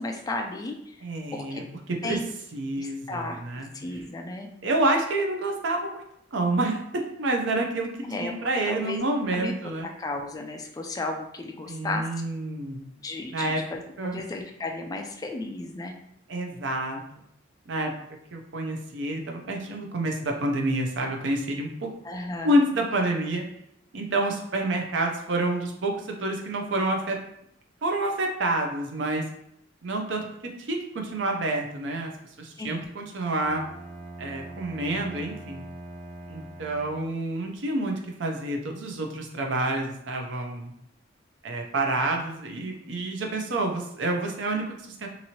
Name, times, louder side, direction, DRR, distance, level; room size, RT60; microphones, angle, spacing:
voice 1, 0.0-1.0 1.3-1.6 2.0-2.3 2.8-3.4 3.7-4.5 8.0-8.3 8.7-9.0 9.3-9.5 10.0-12.1 13.0-16.0 22.0-22.6 32.6-33.0, left 2 dB, 20° left, 3 dB, 0.3 m, -34 dB
voice 2, 1.0-1.6 2.0-2.2 2.5-3.7 4.6-6.0 6.3-9.9 11.7-12.9 13.3-13.6 14.0-14.2 16.3-17.0 17.7-17.9 18.3-21.9 22.4-23.4 23.9-27.2 27.8-29.2 29.8-30.2 30.7-32.1 32.4-33.6 34.2-35.6 36.3-40.7 41.4-45.1, right 2 dB, 65° right, 2 dB, 0.5 m, -28 dB
Bowed string instrument, 33.4-37.3, right 1 dB, 35° right, 0.8 m, -42 dB
2.9 x 2.6 x 2.8 m, 0.75 s
head